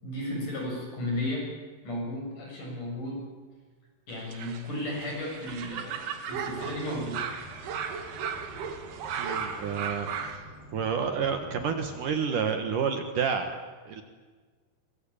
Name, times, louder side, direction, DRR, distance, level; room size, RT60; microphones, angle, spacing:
voice 1, 0.0-1.5 1.8-3.3 4.1-7.2, left 1 dB, 50° left, -1 dB, 8.8 m, -34 dB
sound 1, 4.1-10.4, right 7 dB, 80° right, 3.9 m, -36 dB
sound 2, 6.3-12.0, equal, 65° left, 7.9 m, -49 dB
voice 2, 9.2-10.4 10.7-13.6 13.9-14.0, right 6 dB, 60° right, 6 dB, 2.8 m, -29 dB
24.0 x 22.0 x 8.8 m, 1.4 s
omnidirectional pair, 4.6 m